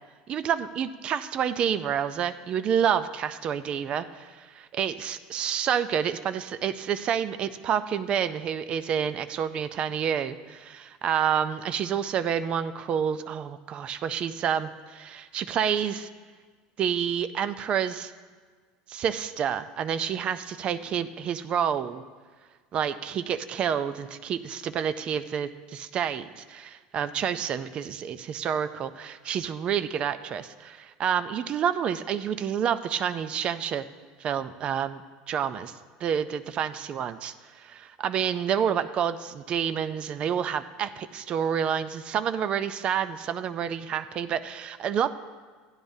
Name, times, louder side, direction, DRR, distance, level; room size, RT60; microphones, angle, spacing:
voice 1, 0.3-16.1 16.8-18.1 18.9-22.0 22.7-33.8 34.2-35.0 35.3-35.7 36.0-45.1, right 8 dB, 35° right, 12 dB, 0.4 m, -29 dB
16.0 x 10.5 x 2.7 m, 1.5 s
cardioid pair, 145°, 3 cm